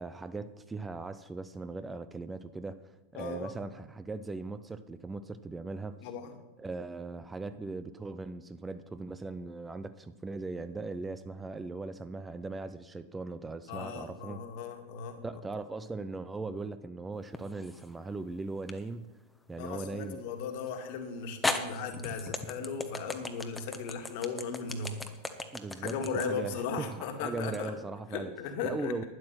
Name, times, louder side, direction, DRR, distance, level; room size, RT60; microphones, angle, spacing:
voice 1, 0.0-6.0 6.6-14.4 15.2-19.1 19.5-20.2 25.5-28.3 28.6-29.0, right 3 dB, 10° right, 0.6 m, -39 dB
voice 2, 3.1-3.6 6.0-6.3 13.7-15.2 19.6-25.0 25.8-27.7 28.1-28.9, left 5 dB, 45° left, 1.9 m, -37 dB
sound 1, 17.3-17.9 18.7-18.8 20.7-20.8 21.4-27.6, left 2 dB, 10° left, 1.1 m, -36 dB
12.0 x 10.5 x 5.9 m
figure-of-eight pair, 90°, 0 cm